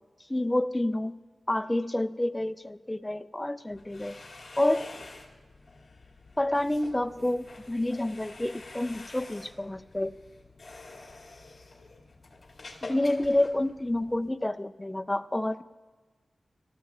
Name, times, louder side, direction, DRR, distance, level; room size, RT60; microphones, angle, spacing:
voice 1, 0.3-1.1 1.5-4.1 4.6-4.9 6.4-10.1 12.8-15.6, left 1 dB, 15° left, 10 dB, 0.5 m, -28 dB
sound 1, 3.7-14.3, left 3 dB, 45° left, 2.3 m, -48 dB
26.5 x 14.0 x 2.4 m, 1.3 s
wide cardioid pair, 95°, 0 cm